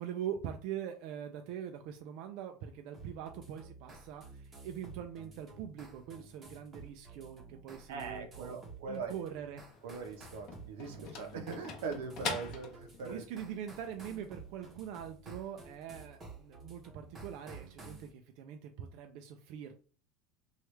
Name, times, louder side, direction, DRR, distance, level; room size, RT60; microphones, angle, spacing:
voice 1, 0.0-8.6 8.9-9.6 13.0-19.7, right 9 dB, 55° right, 5 dB, 0.3 m, -43 dB
sound 1, 2.9-18.1, right 3 dB, 25° right, 0.7 m, -52 dB
voice 2, 7.9-9.1 9.8-13.4, right 5 dB, 85° right, 5 dB, 0.7 m, -41 dB
sound 2, 9.7-13.2, left 4 dB, 45° left, 0.7 m, -42 dB
3.1 x 2.3 x 3.1 m, 0.39 s
supercardioid pair, 160°, 0 cm